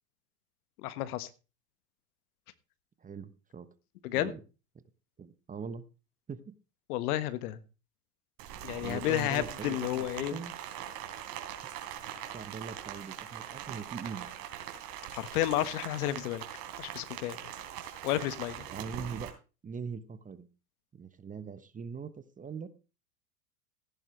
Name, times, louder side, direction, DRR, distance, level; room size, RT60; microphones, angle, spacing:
voice 1, 0.8-1.3 4.0-4.3 6.9-7.6 8.6-10.4 15.1-16.4 16.8-17.5 18.0-18.7, left 13 dB, 65° left, 13 dB, 1.5 m, -31 dB
voice 2, 3.0-3.7 4.1-4.4 5.2-5.8 6.3-6.5 8.8-10.5 12.3-14.3 18.7-19.3 19.6-20.5 20.9-22.7, right 5 dB, 15° right, 13 dB, 1.0 m, -41 dB
Rain, 8.4-19.3, right 11 dB, 55° right, 3.7 m, -42 dB
15.0 x 11.0 x 3.2 m, 0.32 s
hypercardioid pair, 105°, 48 cm